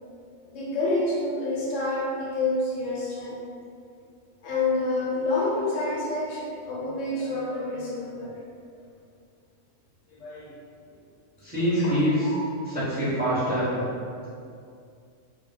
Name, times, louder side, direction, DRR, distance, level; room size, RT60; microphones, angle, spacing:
voice 1, 0.5-3.4 4.4-8.3 10.1-10.5 11.5-11.9 12.2-12.4, left 2 dB, 80° left, -6 dB, 1.1 m, -28 dB
voice 2, 11.4-12.1 12.7-13.8, equal, 10° right, -11 dB, 0.8 m, -25 dB
2.2 x 2.1 x 3.9 m, 2.3 s
omnidirectional pair, 1.3 m